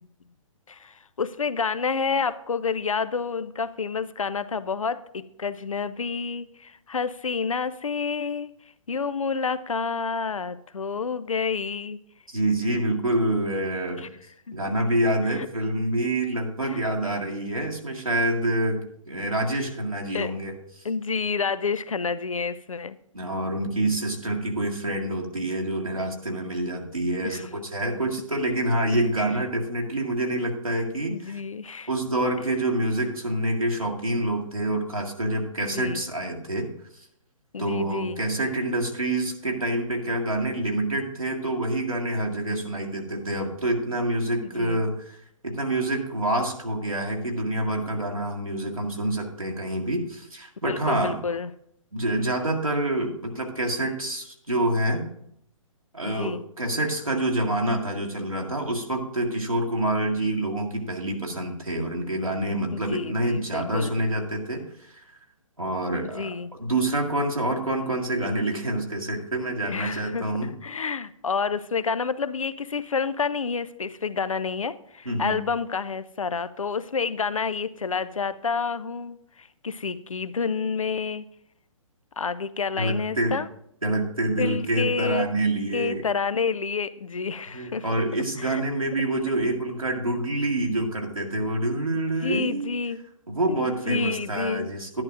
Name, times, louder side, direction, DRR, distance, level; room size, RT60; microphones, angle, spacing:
voice 1, 0.7-8.5 8.9-12.0 14.5-14.6 15.3-15.5 16.6-16.9 20.1-20.3 20.8-23.0 27.2-27.4 31.1-31.9 35.7-36.0 37.5-38.2 44.4-44.8 50.7-51.5 56.1-56.4 62.7-64.0 66.2-66.5 69.7-81.2 82.2-83.5 84.4-85.3 85.7-88.0 88.4-88.6 92.2-93.0 93.5-94.7, left 5 dB, 75° left, 15 dB, 0.5 m, -29 dB
voice 2, 12.3-14.0 14.5-20.8 23.1-31.4 31.9-36.7 37.6-45.2 45.4-51.2 51.9-55.1 55.9-65.0 65.6-66.3 66.6-70.5 75.1-75.4 82.8-83.3 83.8-86.0 87.5-92.7 93.3-95.0, right 1 dB, 85° right, -1 dB, 1.9 m, -27 dB
11.5 x 10.5 x 2.5 m, 0.73 s
figure-of-eight pair, 125°, 18 cm